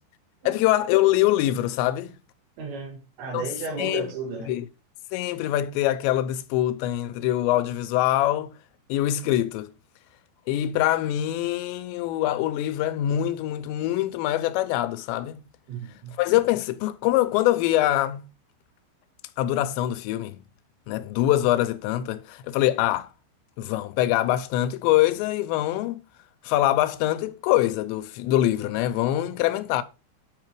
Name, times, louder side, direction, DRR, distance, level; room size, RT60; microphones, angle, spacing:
voice 1, 0.5-2.1 3.3-3.5 3.8-4.1 4.5-4.7 5.1-8.5 8.9-9.7 10.5-15.4 16.2-18.3 19.4-20.4 20.9-23.1 23.6-26.0 26.4-29.8, left 14 dB, 90° left, 2.9 m, -24 dB
voice 2, 2.6-4.5 15.7-16.1, right 4 dB, 85° right, 5.1 m, -34 dB
8.6 x 4.8 x 4.5 m
omnidirectional pair, 5.0 m